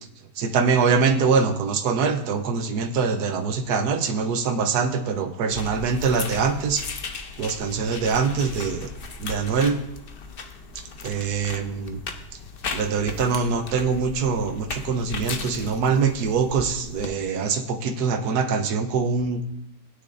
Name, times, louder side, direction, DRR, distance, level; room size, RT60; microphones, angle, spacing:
voice 1, 0.4-6.8 7.4-8.9 9.2-9.8 11.0-12.0 12.7-19.4, right 5 dB, 75° right, 6 dB, 1.4 m, -23 dB
sound 1, 5.5-17.1, left 5 dB, 45° left, 0.7 m, -37 dB
16.5 x 9.4 x 2.6 m, 0.77 s
omnidirectional pair, 1.7 m